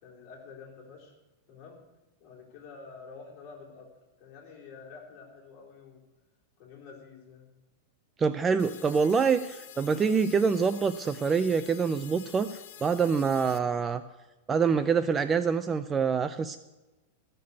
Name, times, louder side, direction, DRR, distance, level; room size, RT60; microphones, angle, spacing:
voice 1, 0.0-1.1 1.5-1.8 2.2-3.9 4.2-6.0 6.6-7.5, left 5 dB, 35° left, -1 dB, 3.9 m, -48 dB
voice 2, 8.2-14.0 14.5-16.6, right 5 dB, 15° right, 11 dB, 0.4 m, -26 dB
sound 1, 8.6-13.6, left 12 dB, 55° left, 0.9 m, -48 dB
14.5 x 6.7 x 8.3 m, 1.1 s
supercardioid pair, 160°, 0 cm